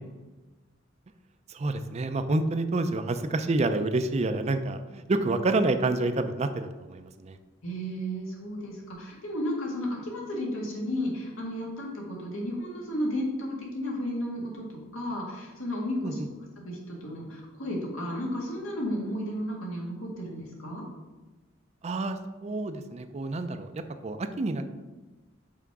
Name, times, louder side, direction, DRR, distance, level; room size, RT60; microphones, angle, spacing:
voice 1, 1.5-7.4 16.0-16.3 21.8-24.6, right 2 dB, 35° right, 9 dB, 0.4 m, -28 dB
voice 2, 7.6-16.2 16.6-20.8, equal, 90° left, -2 dB, 1.9 m, -33 dB
5.7 x 5.0 x 4.8 m, 1.2 s
head